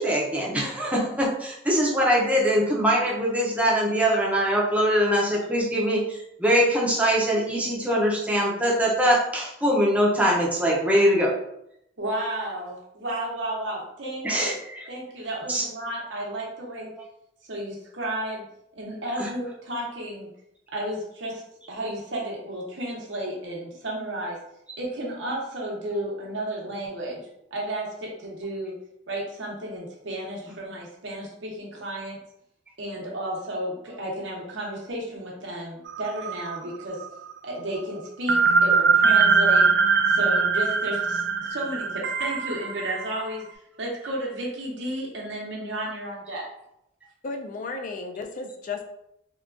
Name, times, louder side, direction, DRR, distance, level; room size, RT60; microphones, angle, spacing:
voice 1, 0.0-11.3 14.2-14.9 15.5-15.6 19.2-19.3, equal, 5° right, -4 dB, 0.5 m, -22 dB
voice 2, 12.0-14.6 14.9-16.9 17.5-18.5 18.7-20.3 20.7-21.4 21.7-24.4 24.8-28.7 29.1-32.2 32.8-37.1 37.4-39.7 40.1-43.5 43.8-46.5, right 1 dB, 80° right, -3 dB, 0.9 m, -33 dB
sound 1, 35.9-36.8 37.0-37.1 38.3-43.2, right 5 dB, 60° right, 0.3 m, -21 dB
voice 3, 47.2-48.8, left 4 dB, 45° left, 4 dB, 0.3 m, -33 dB
3.6 x 2.3 x 2.4 m, 0.79 s
head